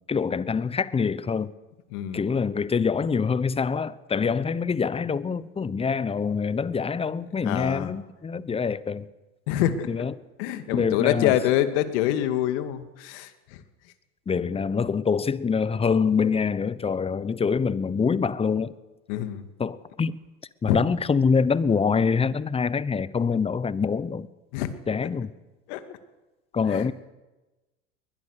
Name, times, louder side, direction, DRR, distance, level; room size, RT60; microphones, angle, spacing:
voice 1, 0.0-1.5 2.1-9.0 9.9-10.1 10.7-11.3 14.3-18.7 19.6-20.2 20.6-24.3 24.9-25.3 26.5-26.9, left 5 dB, 15° left, 0.9 m, -25 dB
voice 2, 1.9-2.2 7.4-7.9 9.5-9.9 10.4-13.6 19.1-19.4 20.7-20.8 24.5-24.8 25.7-25.8 26.7-26.9, left 12 dB, 65° left, 2.3 m, -26 dB
21.5 x 20.5 x 6.7 m
hypercardioid pair, 95°, 38 cm